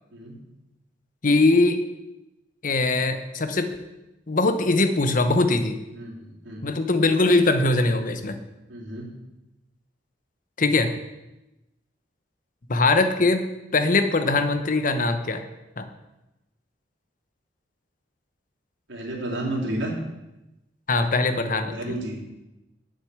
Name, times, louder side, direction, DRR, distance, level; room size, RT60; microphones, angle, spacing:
voice 1, 1.2-1.8 2.6-3.7 4.3-5.8 6.6-8.4 10.6-10.9 12.7-13.5 13.7-15.4 15.8-15.9 20.9-21.8, left 2 dB, 45° left, 9 dB, 0.9 m, -21 dB
voice 2, 5.9-6.6 8.7-9.1 18.9-19.9 21.7-22.2, right 1 dB, 80° right, -2 dB, 3.0 m, -31 dB
8.3 x 6.3 x 8.0 m, 0.98 s
head